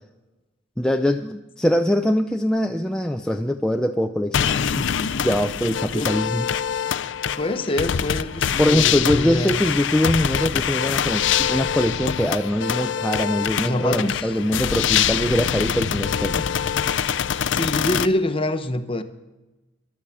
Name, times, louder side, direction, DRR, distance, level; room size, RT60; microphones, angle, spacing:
voice 1, 0.8-6.9 8.6-16.6, equal, 5° left, 4 dB, 0.4 m, -23 dB
sound 1, 4.3-18.1, left 8 dB, 80° left, 0.5 m, -24 dB
voice 2, 7.4-9.6 13.6-14.3 17.5-19.0, left 1 dB, 30° left, 9 dB, 0.9 m, -25 dB
12.5 x 12.0 x 7.3 m, 1.1 s
head